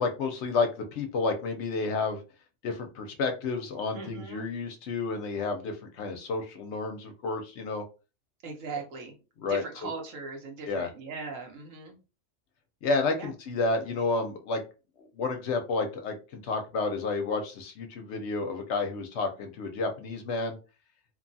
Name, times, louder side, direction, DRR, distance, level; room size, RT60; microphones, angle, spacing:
voice 1, 0.0-2.2 2.6-7.8 9.4-9.9 10.7-10.9 12.8-14.6 15.2-20.6, left 3 dB, 70° left, 5 dB, 0.8 m, -30 dB
voice 2, 3.9-4.4 8.4-9.1 9.5-12.0 13.2-13.3, right 4 dB, 80° right, 1 dB, 1.2 m, -39 dB
2.9 x 2.2 x 2.6 m, 0.32 s
omnidirectional pair, 1.3 m